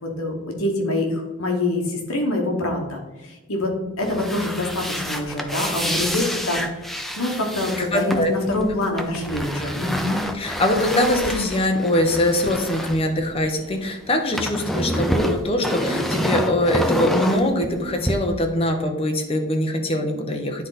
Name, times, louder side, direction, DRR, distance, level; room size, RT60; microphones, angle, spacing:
voice 1, 0.0-10.2, left 1 dB, 70° left, 2 dB, 1.3 m, -25 dB
sound 1, 4.0-13.8 14.1-18.1, equal, ahead, 0.4 m, -28 dB
voice 2, 7.8-8.3 10.3-20.7, left 1 dB, 25° left, 3 dB, 0.8 m, -22 dB
9.8 x 3.9 x 4.0 m, 1.1 s
head